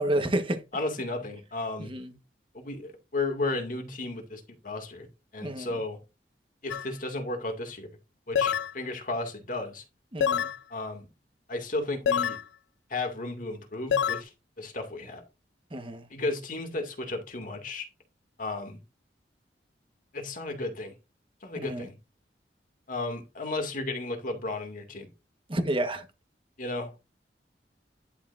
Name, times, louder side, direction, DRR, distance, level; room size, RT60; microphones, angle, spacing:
voice 1, 0.0-0.6 1.8-2.1 5.4-5.8 10.1-10.5 15.7-16.0 21.6-21.9 25.5-26.0, right 1 dB, 30° right, 1.3 m, -30 dB
voice 2, 0.7-1.9 2.5-5.1 5.3-6.0 6.6-7.9 8.3-9.8 10.7-11.1 11.5-12.4 12.9-14.3 14.6-15.2 16.1-17.9 18.4-18.8 20.1-20.9 21.4-21.9 22.9-25.1 26.6-26.9, left 2 dB, 50° left, 2.2 m, -34 dB
sound 1, 6.7-6.9 8.3-8.7 10.2-10.6 12.1-12.4 13.9-14.2, left 8 dB, 85° left, 0.4 m, -26 dB
11.0 x 6.8 x 2.6 m
head